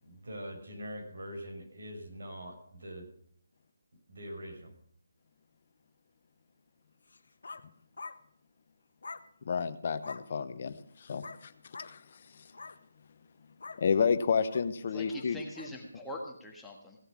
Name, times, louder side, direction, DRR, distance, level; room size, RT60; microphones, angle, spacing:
voice 1, 0.0-3.1 4.1-4.7, equal, 70° right, 2 dB, 5.4 m, -43 dB
sound 1, 7.1-7.7 8.0-8.2 9.0-9.3 10.0-10.3 11.2-11.4 11.7-11.9 12.4-12.8 13.6-13.8 14.5-14.7 15.5-15.7, left 4 dB, 70° left, 1.1 m, -44 dB
voice 2, 9.5-11.5 11.8-12.0 13.8-15.4, left 6 dB, 45° left, 11 dB, 0.8 m, -30 dB
voice 3, 14.9-17.0, left 1 dB, 5° left, -2 dB, 1.5 m, -43 dB
16.5 x 7.8 x 6.1 m, 0.62 s
figure-of-eight pair, 160°, 0 cm